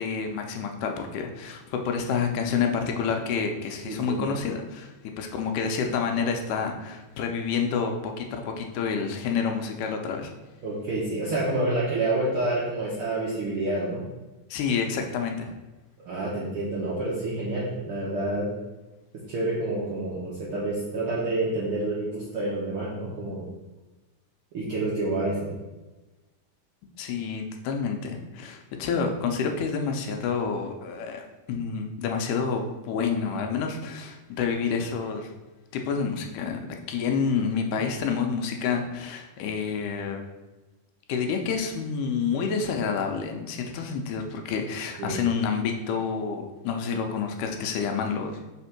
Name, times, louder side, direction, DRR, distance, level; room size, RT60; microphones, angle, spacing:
voice 1, 0.0-10.3 14.5-15.5 27.0-35.3 35.7-40.2 41.1-48.4, left 6 dB, 80° left, 4 dB, 2.1 m, -28 dB
voice 2, 3.8-4.2 10.6-14.0 16.0-18.5 19.3-23.4 24.5-25.5 45.0-45.2, right 2 dB, 70° right, -6 dB, 1.3 m, -28 dB
5.1 x 3.6 x 5.7 m, 1.1 s
omnidirectional pair, 3.8 m